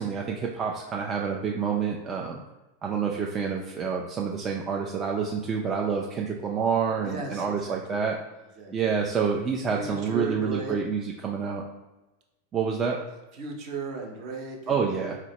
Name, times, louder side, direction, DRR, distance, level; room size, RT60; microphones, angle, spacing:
voice 1, 0.0-2.4 2.8-8.2 8.7-11.6 12.5-13.0 14.7-15.1, right 6 dB, 30° right, 0 dB, 0.3 m, -28 dB
voice 2, 7.0-8.0 8.6-8.7 9.7-10.8 13.3-15.2, right 4 dB, 50° right, 1 dB, 0.8 m, -36 dB
4.0 x 2.0 x 2.9 m, 1.1 s
hypercardioid pair, 100°, 0 cm